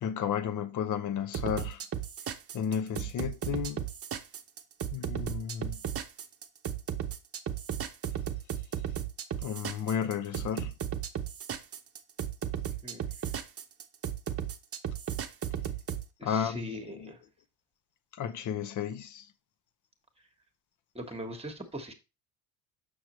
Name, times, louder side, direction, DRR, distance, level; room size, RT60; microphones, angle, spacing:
voice 1, 0.0-1.8 2.5-3.8 4.9-5.8 9.4-10.7 16.2-17.1 18.2-19.3, left 8 dB, 50° left, 0.9 m, -33 dB
sound 1, 1.3-16.0, right 9 dB, 35° right, 0.8 m, -35 dB
voice 2, 16.2-17.2 20.9-21.9, equal, 15° right, 1.5 m, -40 dB
6.3 x 6.3 x 3.1 m
supercardioid pair, 90°, 39 cm